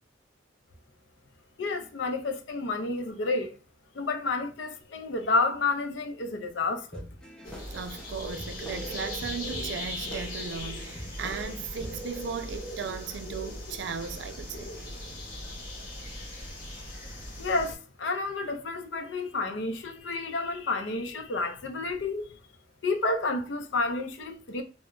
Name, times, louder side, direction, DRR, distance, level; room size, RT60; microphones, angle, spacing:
voice 1, 1.6-3.6 3.9-7.0 17.4-22.3 22.8-24.6, left 3 dB, 80° left, 0.5 m, -30 dB
sound 1, 6.9-12.1, equal, 5° left, 0.5 m, -45 dB
sound 2, 7.4-17.7, left 1 dB, 50° left, 0.9 m, -39 dB
voice 2, 7.7-14.7, right 6 dB, 70° right, 0.4 m, -36 dB
2.2 x 2.1 x 3.6 m
head